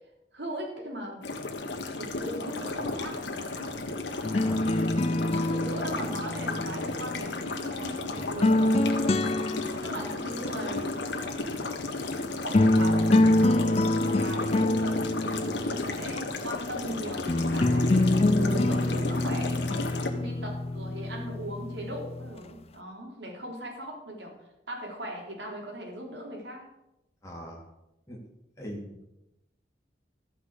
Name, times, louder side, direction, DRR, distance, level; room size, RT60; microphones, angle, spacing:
voice 1, 0.3-1.2 2.0-3.7 5.1-9.1 9.8-11.0 12.4-18.1 18.4-26.7, equal, 85° right, 0 dB, 3.7 m, -39 dB
sound 1, 1.2-20.1, left 3 dB, 90° left, 1.6 m, -34 dB
sound 2, 4.2-7.5 8.2-10.3 12.1-12.2 12.5-16.2 17.3-22.3, left 1 dB, 35° left, 0.5 m, -26 dB
voice 2, 4.4-5.1 27.2-27.6 28.1-28.2 28.6-29.0, equal, 15° left, -2 dB, 2.1 m, -41 dB
13.5 x 6.0 x 8.1 m, 0.91 s
head